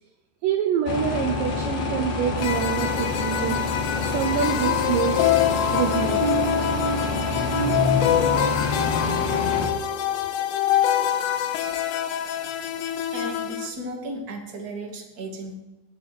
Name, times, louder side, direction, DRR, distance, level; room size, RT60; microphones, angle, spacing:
voice 1, 0.4-3.6 4.0-5.3 5.7-6.3, right 8 dB, 80° right, 5 dB, 1.9 m, -26 dB
sound 1, 0.9-9.7, left 3 dB, 60° left, 3.1 m, -27 dB
sound 2, 2.4-13.7, left 10 dB, 85° left, 3.3 m, -25 dB
sound 3, 4.6-10.3 10.7-11.0 11.5-11.7, right 7 dB, 45° right, 2.6 m, -34 dB
voice 2, 13.1-15.6, right 1 dB, 30° right, 1 dB, 2.0 m, -35 dB
11.0 x 9.1 x 7.6 m, 1.0 s
omnidirectional pair, 5.0 m